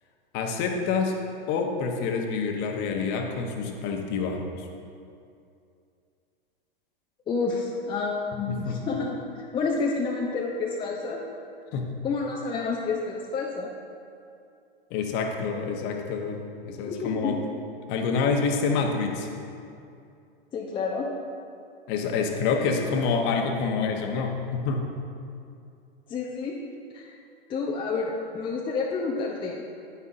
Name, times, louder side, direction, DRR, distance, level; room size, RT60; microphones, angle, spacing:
voice 1, 0.3-1.2 1.5-4.7 8.5-8.8 11.7-11.9 14.9-17.3 17.9-19.4 21.9-24.9, left 5 dB, 35° left, 3 dB, 1.1 m, -27 dB
voice 2, 7.3-11.2 12.0-13.7 16.9-17.4 20.5-21.1 26.1-26.6 26.9-27.1 27.5-29.6, left 4 dB, 15° left, -2 dB, 0.6 m, -29 dB
9.7 x 9.5 x 2.6 m, 2.5 s
figure-of-eight pair, 100°, 29 cm